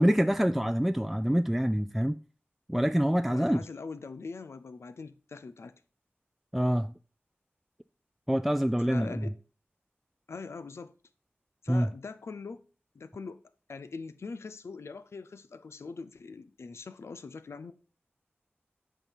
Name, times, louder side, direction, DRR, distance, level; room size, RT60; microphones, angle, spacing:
voice 1, 0.0-2.2 2.7-3.6 6.5-6.9 8.3-9.3 11.7-11.9, equal, 5° right, 0.3 m, -26 dB
voice 2, 3.3-5.8 8.9-9.3 10.3-10.9 11.6-12.6 12.9-13.4 13.7-17.7, left 4 dB, 90° left, 0.6 m, -42 dB
9.0 x 5.5 x 4.6 m
wide cardioid pair, 65°, 4 cm